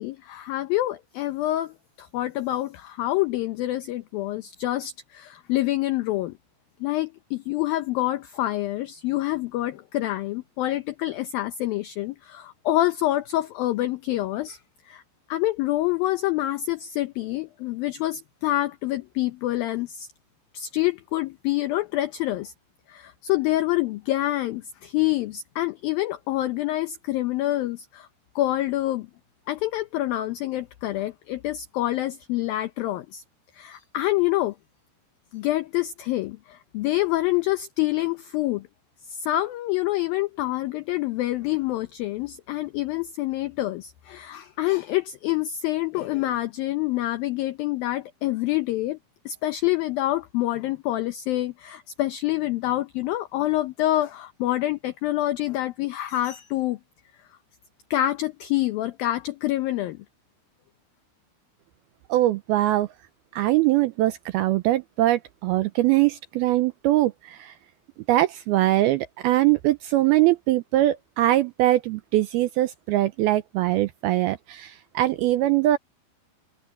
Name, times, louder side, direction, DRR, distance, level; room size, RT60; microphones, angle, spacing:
voice 1, 0.0-6.4 6.8-14.6 14.9-15.0 15.3-20.1 20.5-22.5 22.9-28.1 28.4-29.1 29.5-33.2 33.5-34.6 35.3-38.7 39.1-49.0 49.3-56.8 57.9-60.0, left 15 dB, 80° left, 2.1 m, -27 dB
voice 2, 62.1-62.9 63.4-67.5 68.1-75.8, right 15 dB, 85° right, 2.2 m, -22 dB
omnidirectional pair, 5.2 m